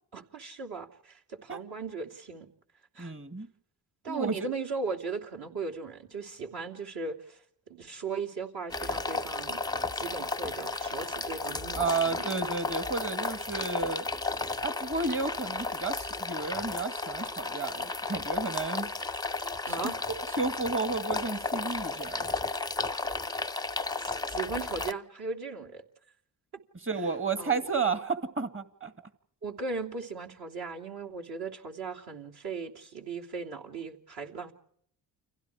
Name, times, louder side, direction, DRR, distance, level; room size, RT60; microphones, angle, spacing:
voice 1, 0.1-2.5 2.9-3.1 4.0-7.4 7.7-9.6 9.9-12.4 19.7-19.9 24.0-25.8 27.4-27.6 29.4-34.5, right 4 dB, 50° right, 0 dB, 3.2 m, -37 dB
voice 2, 3.0-3.5 4.1-4.5 11.8-14.1 14.6-18.9 19.7-22.3 26.8-28.9, right 4 dB, 25° right, 11 dB, 2.1 m, -32 dB
sound 1, 8.7-24.9, left 3 dB, 10° left, 0.9 m, -33 dB
30.0 x 23.5 x 4.9 m, 0.67 s
hypercardioid pair, 55°, 49 cm